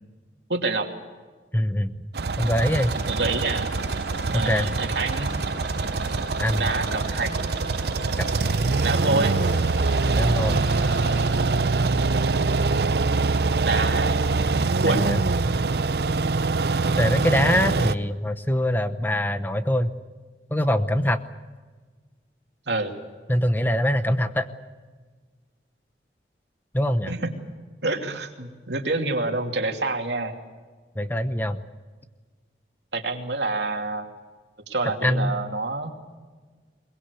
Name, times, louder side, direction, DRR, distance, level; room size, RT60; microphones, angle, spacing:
voice 1, 0.5-0.9 3.1-3.7 4.3-5.3 6.6-7.3 8.8-9.4 10.8-11.8 13.6-14.2 14.7-15.1 22.7-22.9 27.1-27.3 27.8-30.4 32.9-34.1 34.7-35.9, right 3 dB, 85° right, 4 dB, 2.7 m, -27 dB
voice 2, 1.5-1.9 2.4-2.9 4.3-4.7 6.4-6.6 8.2-8.3 10.2-10.6 14.9-15.2 17.0-19.9 20.5-21.2 23.3-24.5 26.7-27.1 31.0-31.6 35.0-35.4, left 1 dB, 10° left, 10 dB, 0.9 m, -23 dB
sound 1, 2.1-17.9, right 3 dB, 70° right, 0.7 m, -24 dB
sound 2, 2.6-11.4, left 1 dB, 45° left, 7.7 m, -39 dB
22.5 x 21.5 x 8.3 m, 1.4 s
head